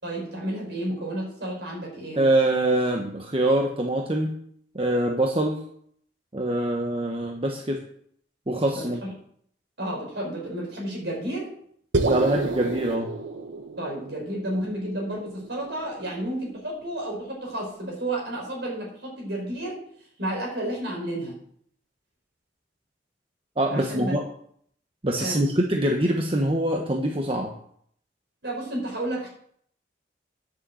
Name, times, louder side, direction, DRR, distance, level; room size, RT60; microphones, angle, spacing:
voice 1, 0.0-2.2 8.7-9.1 9.8-11.5 13.8-19.8 20.2-21.4 23.7-24.1 25.2-25.4 28.4-29.3, right 1 dB, 65° right, -2 dB, 5.5 m, -31 dB
voice 2, 2.2-4.3 4.7-5.6 6.3-7.8 8.5-9.0 12.1-13.1 23.6-24.2 25.0-27.5, right 1 dB, 30° right, 1 dB, 1.1 m, -24 dB
sound 1, 11.9-16.3, right 2 dB, 90° right, 1.2 m, -30 dB
10.0 x 6.9 x 7.7 m, 0.65 s
head